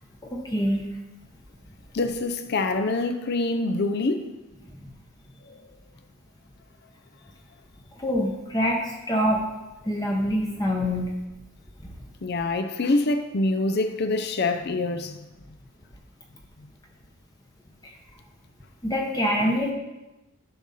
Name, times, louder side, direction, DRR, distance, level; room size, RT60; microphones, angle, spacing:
voice 1, 0.2-0.9 4.8-4.9 8.0-9.4 9.8-11.2 11.8-11.9 17.8-17.9 18.8-19.7, equal, 15° left, 0 dB, 0.8 m, -25 dB
voice 2, 1.9-4.3 5.5-5.6 12.2-15.2 19.4-19.5, left 2 dB, 50° left, 8 dB, 0.6 m, -25 dB
11.0 x 6.3 x 4.2 m, 1.0 s
head